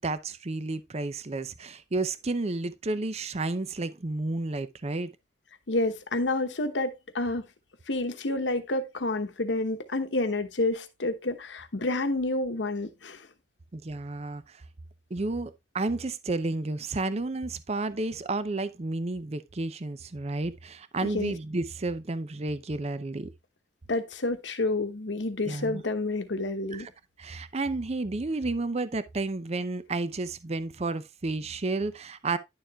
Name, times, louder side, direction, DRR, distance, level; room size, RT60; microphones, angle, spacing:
voice 1, 0.0-5.1 13.7-14.6 15.1-23.3 25.4-25.8 26.7-26.9 27.2-32.4, right 2 dB, 35° right, 0.6 m, -31 dB
voice 2, 5.7-7.4 7.9-13.2 21.0-21.3 23.9-26.9, left 2 dB, 80° left, 1.0 m, -29 dB
10.5 x 6.9 x 2.3 m
head